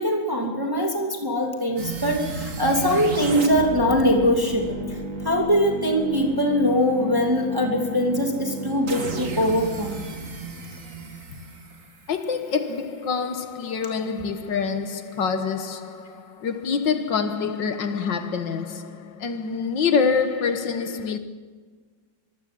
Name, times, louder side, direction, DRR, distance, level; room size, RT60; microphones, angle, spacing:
voice 1, 0.0-5.0 5.2-10.0, equal, 10° right, 2.4 m, -22 dB
sound 1, 1.8-12.7, right 1 dB, 40° right, 2.4 m, -33 dB
voice 2, 12.1-21.2, left 5 dB, 70° left, 1.9 m, -26 dB
24.5 x 15.0 x 7.6 m
omnidirectional pair, 2.1 m